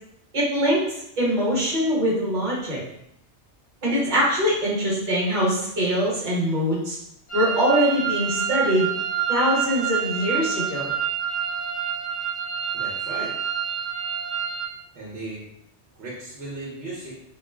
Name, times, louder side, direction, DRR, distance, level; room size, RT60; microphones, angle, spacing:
voice 1, 0.3-0.8 1.2-2.8 3.8-7.0 7.3-8.9 9.3-10.9, equal, 45° right, -6 dB, 1.0 m, -23 dB
sound 1, 7.3-14.7, right 7 dB, 55° left, 0.8 m, -27 dB
voice 2, 12.7-13.4 14.9-15.5 16.0-17.1, right 2 dB, 65° right, -6 dB, 1.0 m, -36 dB
2.4 x 2.0 x 3.3 m, 0.76 s
omnidirectional pair, 1.2 m